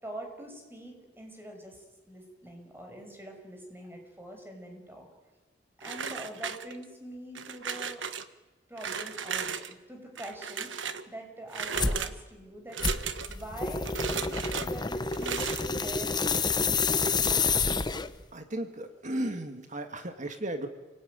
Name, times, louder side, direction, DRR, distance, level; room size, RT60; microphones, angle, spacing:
voice 1, 0.0-5.1 5.8-8.0 8.7-12.8 13.3-16.2, right 1 dB, 10° right, 2 dB, 5.9 m, -44 dB
sound 1, 5.8-6.9 7.3-8.2 8.8-9.7 10.1-11.0 11.5-12.1 12.7-13.4 13.8-14.7 15.1-15.7, right 6 dB, 85° right, 1.3 m, -35 dB
sound 2, 11.8-12.1 12.8-18.2, left 4 dB, 25° left, 1.0 m, -28 dB
voice 2, 18.3-20.7, right 1 dB, 40° right, 7 dB, 1.8 m, -35 dB
28.5 x 19.0 x 9.4 m, 1.2 s
head